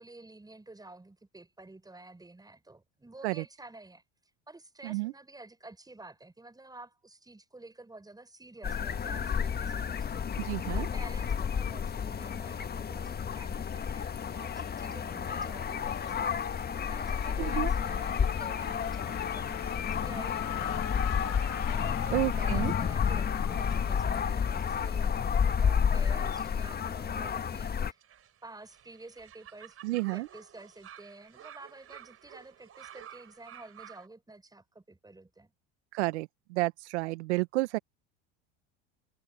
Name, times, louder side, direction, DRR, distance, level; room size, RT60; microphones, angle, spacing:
voice 1, 0.0-4.0 4.5-21.0 21.7-28.0 28.4-29.8 30.1-35.5, right 2 dB, 10° right, 7.1 m, -50 dB
sound 1, 8.6-27.9, left 7 dB, 30° left, 1.6 m, -31 dB
voice 2, 10.4-10.9 17.4-17.7 22.1-22.7 29.8-30.3 35.9-37.8, right 21 dB, 75° right, 1.5 m, -31 dB
Race car auto racing / Accelerating revving vroom, 12.3-13.1 13.4-27.1, left 12 dB, 50° left, 2.4 m, -45 dB
sound 2, 27.8-34.1, right 10 dB, 40° right, 4.4 m, -52 dB
hypercardioid pair, 80°, 34 cm